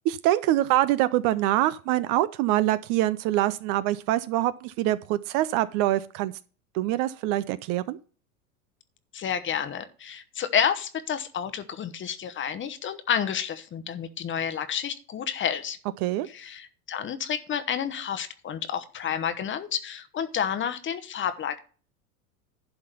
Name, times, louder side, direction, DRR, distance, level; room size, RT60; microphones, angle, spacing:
voice 1, 0.0-6.3 6.7-8.0 16.0-16.3, right 14 dB, 45° right, 15 dB, 0.5 m, -24 dB
voice 2, 9.1-15.8 16.2-21.6, left 8 dB, 25° left, 12 dB, 0.9 m, -30 dB
11.5 x 3.9 x 6.7 m, 0.39 s
hypercardioid pair, 95°, 45 cm